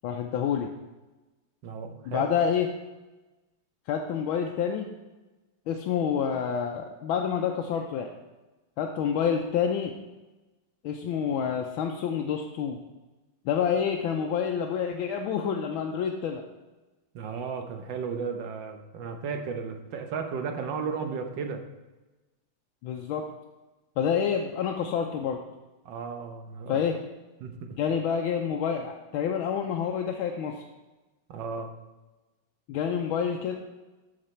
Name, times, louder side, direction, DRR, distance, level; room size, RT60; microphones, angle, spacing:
voice 1, 0.0-0.7 2.0-2.7 3.9-4.9 5.7-8.1 8.8-9.9 10.8-12.8 13.4-16.4 22.8-23.2 24.0-25.4 26.7-27.0 27.8-30.6 32.7-33.6, left 7 dB, 75° left, 2 dB, 1.4 m, -28 dB
voice 2, 1.6-2.3 17.1-21.6 25.8-26.8 27.4-27.8 31.3-31.7, right 5 dB, 65° right, 5 dB, 1.5 m, -34 dB
12.5 x 5.2 x 4.3 m, 1.1 s
omnidirectional pair, 2.4 m